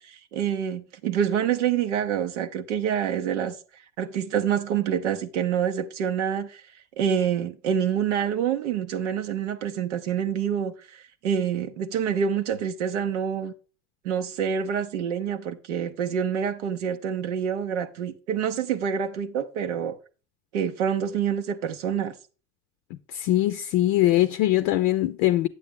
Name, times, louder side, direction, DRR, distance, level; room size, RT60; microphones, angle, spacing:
voice 1, 0.0-3.6 4.0-6.6 7.0-13.5 14.0-19.9 20.5-22.1, right 8 dB, 80° right, 0.6 m, -27 dB
voice 2, 22.9-25.5, left 15 dB, 60° left, 0.6 m, -22 dB
8.4 x 7.6 x 3.5 m
hypercardioid pair, 65°, 35 cm